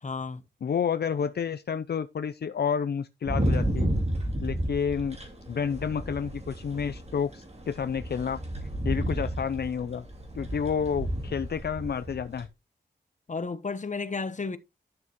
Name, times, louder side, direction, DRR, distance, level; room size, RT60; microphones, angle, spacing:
voice 1, 0.0-0.4 13.3-14.6, left 4 dB, 45° left, 1.0 m, -32 dB
voice 2, 0.6-3.9 4.4-5.2 5.5-8.4 8.8-10.1 10.4-12.5, left 7 dB, 65° left, 0.5 m, -30 dB
sound 1, 3.3-12.5, right 1 dB, 40° right, 2.8 m, -32 dB
11.0 x 6.6 x 3.0 m
wide cardioid pair, 70°, 18 cm